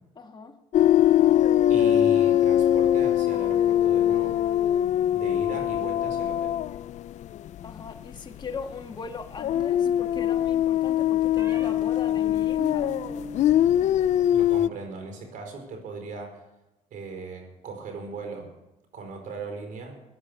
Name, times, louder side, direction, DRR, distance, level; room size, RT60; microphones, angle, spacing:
voice 1, 0.2-0.6 7.6-13.0, left 5 dB, 35° left, 1.8 m, -39 dB
sound 1, 0.7-8.2 8.4-8.7 9.3-14.7, left 11 dB, 60° left, 0.4 m, -22 dB
voice 2, 1.7-4.4 5.1-6.6 14.3-16.4 16.9-18.5 18.9-20.0, right 4 dB, 70° right, 4.8 m, -38 dB
sound 2, 9.6-10.4 11.4-11.7 12.3-13.8 14.1-14.7, equal, 20° right, 2.5 m, -40 dB
16.5 x 10.5 x 6.6 m
cardioid pair, 95°, 14 cm